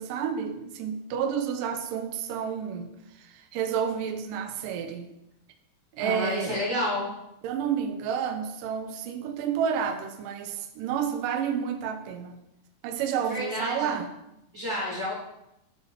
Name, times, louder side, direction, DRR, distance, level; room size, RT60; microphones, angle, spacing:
voice 1, 0.0-2.9 3.2-5.0 5.9-6.6 7.4-12.3 12.8-14.1, right 7 dB, 80° right, 6 dB, 2.0 m, -30 dB
voice 2, 6.0-7.1 13.3-13.9 14.5-15.1, left 1 dB, 35° right, -7 dB, 2.1 m, -30 dB
9.6 x 4.0 x 5.3 m, 0.85 s
omnidirectional pair, 4.7 m